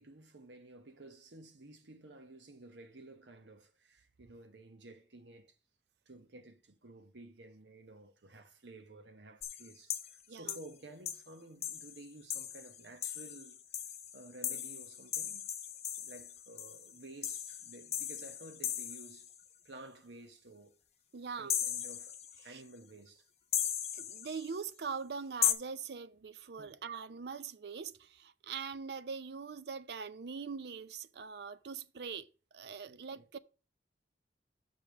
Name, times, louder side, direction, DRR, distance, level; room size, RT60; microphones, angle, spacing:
voice 1, 0.0-5.5 6.1-13.6 14.1-15.5 16.0-19.3 19.6-20.8 21.4-22.2 22.4-23.3 26.6-26.8 32.9-33.3, right 2 dB, 90° right, 1.2 m, -53 dB
sound 1, 9.4-10.2 10.5-10.7 11.1-11.2 11.6-19.4 21.5-22.5 23.5-24.6 25.4-25.5, left 10 dB, 35° left, 0.8 m, -37 dB
voice 2, 21.1-21.6 22.5-22.6 23.9-32.3 32.5-33.4, right 5 dB, 65° right, 0.5 m, -42 dB
6.2 x 5.2 x 6.1 m
head